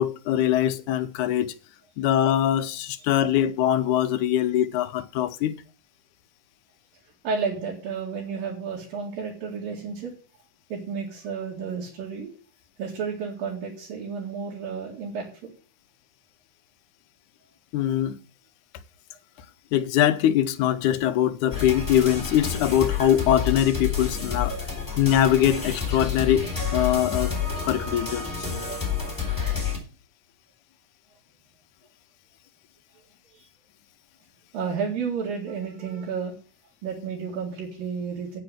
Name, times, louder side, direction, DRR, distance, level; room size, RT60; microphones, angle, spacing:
voice 1, 0.0-1.5 2.0-5.6 17.7-18.2 19.7-24.5 25.0-27.3 27.6-28.5, left 11 dB, 75° left, 2.0 m, -22 dB
voice 2, 7.2-10.1 10.7-12.3 12.8-15.3 33.3-33.5 34.5-36.3 36.8-38.4, right 5 dB, 85° right, 4.0 m, -31 dB
sound 1, 21.5-29.8, left 6 dB, 5° left, 3.7 m, -29 dB
8.9 x 7.0 x 7.8 m
omnidirectional pair, 3.9 m